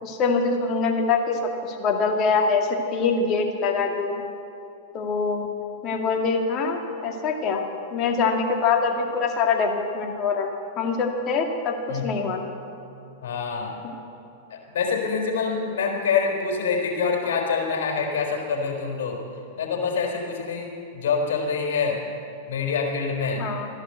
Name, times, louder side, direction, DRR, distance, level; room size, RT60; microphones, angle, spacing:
voice 1, 0.0-4.3 4.9-5.5 5.8-7.6 7.9-10.5 10.8-12.4 13.8-13.9 23.4-23.7, left 4 dB, 40° left, 2 dB, 2.2 m, -24 dB
voice 2, 13.2-13.7 14.7-19.2 19.6-22.0 22.5-23.4, left 5 dB, 70° left, 0 dB, 4.1 m, -26 dB
14.5 x 11.5 x 7.9 m, 2.6 s
hypercardioid pair, 105°, 0 cm